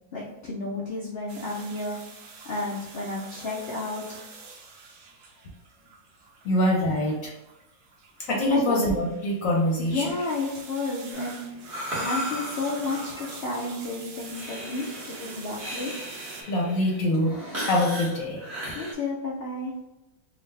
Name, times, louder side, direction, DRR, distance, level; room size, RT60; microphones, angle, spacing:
voice 1, 0.1-2.0 2.4-4.2 8.5-8.8 9.8-11.4 12.0-14.8 15.2-15.9 18.7-19.7, left 3 dB, 90° left, -4 dB, 0.5 m, -31 dB
sound 1, 1.3-16.4, right 4 dB, 70° right, 1.1 m, -46 dB
voice 2, 6.4-7.3 8.3-10.1 16.5-18.4, left 1 dB, 60° left, -2 dB, 1.0 m, -24 dB
Breathing, 11.1-18.9, right 1 dB, 40° right, 1.4 m, -36 dB
3.8 x 2.4 x 3.2 m, 0.90 s
omnidirectional pair, 1.9 m